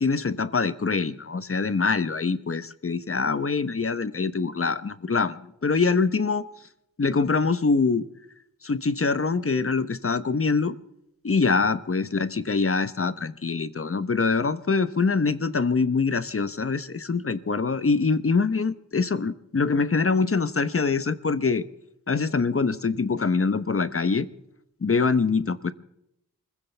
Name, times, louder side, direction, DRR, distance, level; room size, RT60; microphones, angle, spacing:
voice 1, 0.0-6.4 7.0-8.1 8.6-10.8 11.2-21.7 22.1-24.3 24.8-25.7, left 4 dB, 40° left, 14 dB, 1.0 m, -24 dB
25.5 x 15.5 x 3.4 m, 0.81 s
wide cardioid pair, 70°, 36 cm